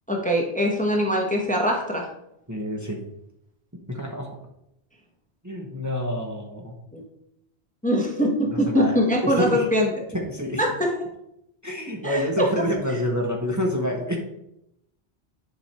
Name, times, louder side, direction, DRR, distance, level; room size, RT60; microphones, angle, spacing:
voice 1, 0.1-2.1 6.9-7.0 7.8-9.9 10.6-10.9 12.0-13.0, equal, 5° left, 1 dB, 1.3 m, -23 dB
voice 2, 2.5-3.0 3.9-4.4 5.4-6.8 8.7-9.0 9.2-9.7 10.1-10.6 11.6-14.2, left 1 dB, 15° right, 0 dB, 1.3 m, -27 dB
10.5 x 5.3 x 4.4 m, 0.80 s
omnidirectional pair, 1.1 m